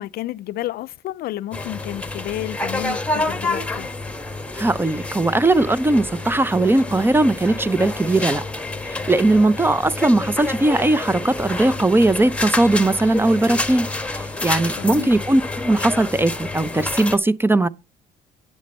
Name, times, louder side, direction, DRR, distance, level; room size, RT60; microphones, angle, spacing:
voice 1, 0.0-3.9 14.8-15.1, left 14 dB, 65° left, 0.5 m, -31 dB
sound 1, 1.5-17.2, left 2 dB, 5° left, 1.3 m, -28 dB
voice 2, 4.6-8.4 9.1-13.9 14.4-17.7, right 2 dB, 15° right, 0.5 m, -19 dB
8.5 x 7.2 x 5.3 m
cardioid pair, 110°, 17 cm